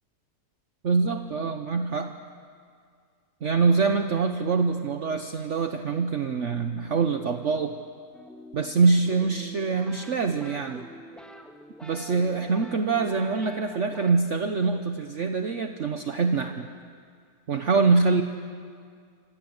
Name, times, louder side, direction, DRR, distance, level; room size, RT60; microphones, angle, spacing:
voice 1, 0.8-2.1 3.4-7.8 8.5-10.9 11.8-16.7 17.5-18.2, right 4 dB, 50° right, 6 dB, 1.3 m, -24 dB
sound 1, 8.1-14.1, equal, ahead, 1.8 m, -46 dB
27.0 x 26.5 x 8.0 m, 2.1 s
omnidirectional pair, 1.7 m